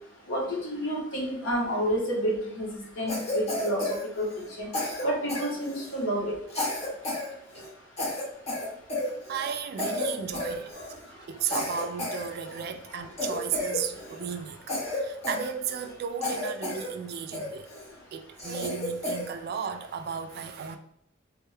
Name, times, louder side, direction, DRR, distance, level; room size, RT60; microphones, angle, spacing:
voice 1, 0.3-2.7 3.0-3.9 4.2-4.3 4.6-4.7 5.0-6.3, equal, 70° left, 1.1 m, -29 dB
Cough, 3.1-4.5 4.7-6.0 6.5-7.3 7.5-7.7 8.0-9.5 9.8-10.1 10.3-11.0 11.5-12.7 13.2-14.2 14.7-15.9 16.2-16.9 17.3-17.9 18.4-19.3, left 1 dB, 35° left, 0.8 m, -32 dB
voice 2, 9.3-10.8 11.2-17.7 18.1-20.8, right 7 dB, 55° right, 0.3 m, -34 dB
3.4 x 2.3 x 3.2 m
head